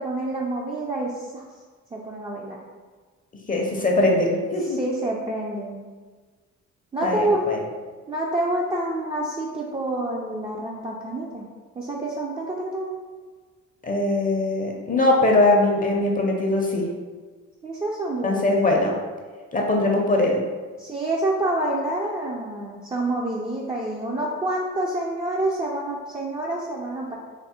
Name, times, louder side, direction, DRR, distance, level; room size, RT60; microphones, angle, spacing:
voice 1, 0.0-1.4 1.9-2.6 4.6-5.9 6.9-7.5 8.1-11.5 11.8-13.0 17.6-18.7 20.8-27.2, right 1 dB, 20° right, -4 dB, 0.4 m, -27 dB
voice 2, 3.5-4.8 7.0-7.6 13.8-16.8 18.2-19.0 19.5-20.4, left 2 dB, 25° left, 0 dB, 0.6 m, -21 dB
3.5 x 2.1 x 4.1 m, 1.4 s
cardioid pair, 90°, 30 cm